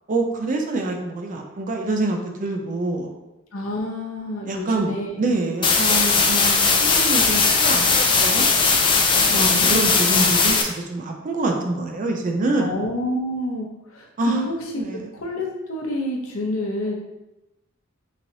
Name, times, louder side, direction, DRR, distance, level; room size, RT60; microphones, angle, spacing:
voice 1, 0.1-3.1 4.5-8.5 9.1-12.7 14.2-14.4 14.8-15.1, right 2 dB, 40° right, 3 dB, 0.4 m, -26 dB
voice 2, 3.5-5.3 9.3-9.7 12.6-17.0, left 1 dB, 70° left, 0 dB, 0.7 m, -28 dB
sound 1, 5.6-10.6, left 4 dB, 25° left, 0.4 m, -18 dB
4.0 x 3.1 x 2.7 m, 0.96 s
head